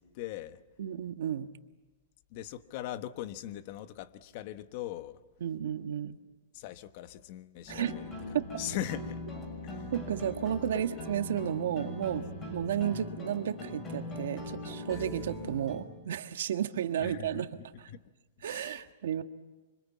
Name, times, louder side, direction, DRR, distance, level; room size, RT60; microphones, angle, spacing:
voice 1, 0.0-0.6 2.3-5.2 6.5-8.1 8.6-9.2 9.6-9.9 17.0-17.5 17.9-18.1 18.4-18.8, left 12 dB, 45° left, 1.2 m, -40 dB
voice 2, 0.8-1.5 5.4-6.2 7.7-8.0 8.3-8.4 9.9-17.5 18.4-19.2, right 10 dB, 80° right, 1.5 m, -33 dB
sound 1, 7.7-15.8, left 1 dB, 20° left, 6.1 m, -40 dB
26.5 x 25.0 x 8.5 m
supercardioid pair, 160°, 0 cm